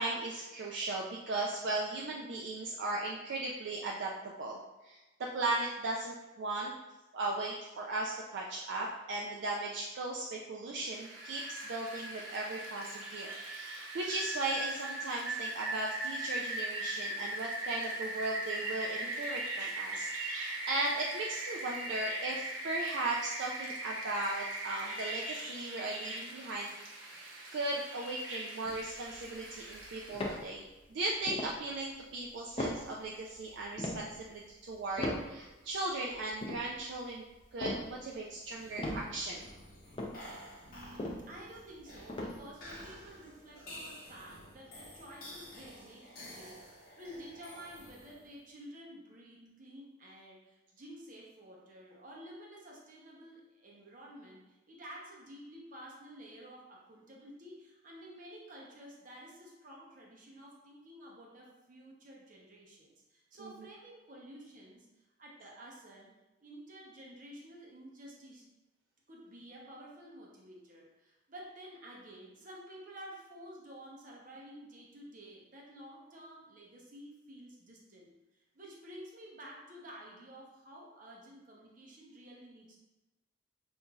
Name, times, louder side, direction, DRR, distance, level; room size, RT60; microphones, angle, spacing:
voice 1, 0.0-4.1 4.4-6.7 7.1-26.7 27.5-37.2 37.5-39.5 63.4-63.5, right 2 dB, 60° right, -2 dB, 0.4 m, -37 dB
Rain, 10.9-30.4, right 2 dB, 90° right, 0.9 m, -40 dB
sound 1, 28.6-30.9 31.2-31.6 32.1-32.2 32.3-35.7 36.1-38.5 38.8-42.8 43.2-43.3, left 1 dB, 25° left, 0.4 m, -39 dB
sound 2, 38.5-48.4, left 1 dB, 50° left, 0.9 m, -51 dB
voice 2, 40.7-66.1 66.4-68.4 69.1-82.8, equal, 40° right, -3 dB, 0.8 m, -51 dB
5.5 x 2.6 x 2.3 m, 1.1 s
head